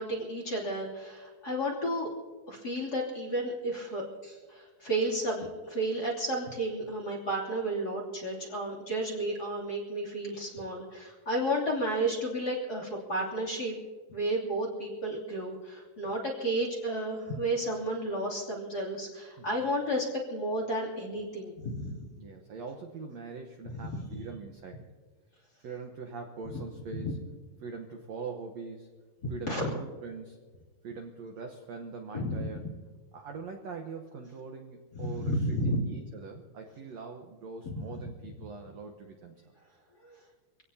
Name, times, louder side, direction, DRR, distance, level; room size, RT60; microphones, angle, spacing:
voice 1, 0.0-2.1 2.5-13.7 14.1-22.0 23.8-24.0 27.0-27.1 29.2-29.7 32.1-32.5 35.0-35.8 37.6-37.8 40.0-40.1, right 1 dB, 25° left, -2 dB, 2.8 m, -32 dB
voice 2, 22.2-24.8 25.6-27.2 27.6-28.9 29.3-30.4 30.8-32.6 33.1-39.5, right 4 dB, 75° right, 3 dB, 1.5 m, -42 dB
25.0 x 17.0 x 2.8 m, 1.4 s
omnidirectional pair, 4.7 m